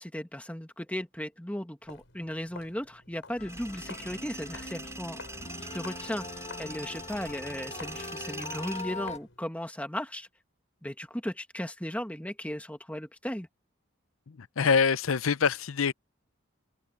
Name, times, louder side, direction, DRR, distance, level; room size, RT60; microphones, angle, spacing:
voice 1, 0.0-5.4 5.7-6.3 6.6-10.3 10.8-13.5, equal, 5° left, 1.7 m, -36 dB
Walk footsteps, 1.8-9.5, left 3 dB, 60° left, 6.8 m, -51 dB
sound 1, 3.4-9.2, left 3 dB, 35° left, 1.7 m, -42 dB
Tools, 3.5-8.8, right 3 dB, 15° right, 6.1 m, -43 dB
voice 2, 14.3-15.9, left 6 dB, 85° left, 0.6 m, -25 dB
open air
head